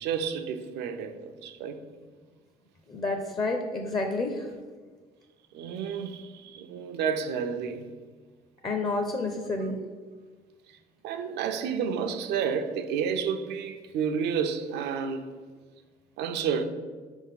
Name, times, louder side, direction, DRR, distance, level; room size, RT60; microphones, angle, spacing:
voice 1, 0.0-1.8 5.5-7.9 10.7-10.8 11.0-15.3 16.2-16.6, right 7 dB, 80° right, 0.6 m, -30 dB
voice 2, 2.9-4.5 8.6-9.8, left 2 dB, 25° left, 0.6 m, -29 dB
5.0 x 3.6 x 5.7 m
cardioid pair, 110°, 17 cm